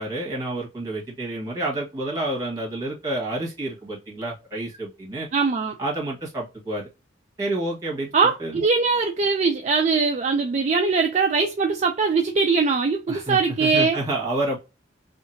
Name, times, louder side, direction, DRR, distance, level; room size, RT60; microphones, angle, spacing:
voice 1, 0.0-5.3 5.8-6.9 7.4-8.1 8.4-8.6 13.1-14.6, right 1 dB, 20° right, 1.2 m, -29 dB
voice 2, 5.3-5.7 8.1-14.0, right 4 dB, 35° right, 0.3 m, -21 dB
2.8 x 2.5 x 2.6 m
head